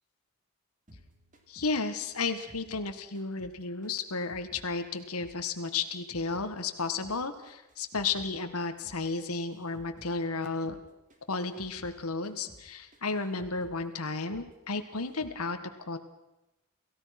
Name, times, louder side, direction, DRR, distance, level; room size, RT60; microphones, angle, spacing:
sound 1, 0.9-3.6 3.8-6.5 6.8-10.2 10.4-10.8 11.1-13.8 14.1-14.5 14.7-15.4, equal, 35° right, 3.1 m, -56 dB
voice 1, 1.5-10.8 11.3-16.0, left 4 dB, 85° left, 7 dB, 1.7 m, -33 dB
28.5 x 16.0 x 6.0 m, 0.96 s
head